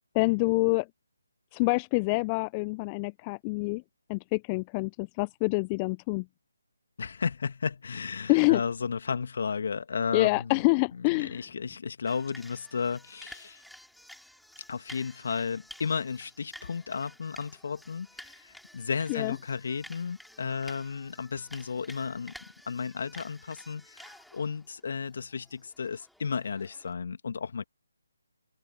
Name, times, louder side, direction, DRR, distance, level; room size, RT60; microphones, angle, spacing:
voice 1, 0.1-0.9 1.5-3.8 4.1-6.3 8.3-8.6 10.1-11.4 19.1-19.4, left 29 dB, 20° left, 0.6 m, -26 dB
voice 2, 7.0-10.5 10.9-13.6 14.7-22.3 22.7-27.7, left 5 dB, 50° left, 2.4 m, -33 dB
sound 1, 12.1-26.9, left 1 dB, ahead, 4.5 m, -52 dB
figure-of-eight pair, 150°, 0 cm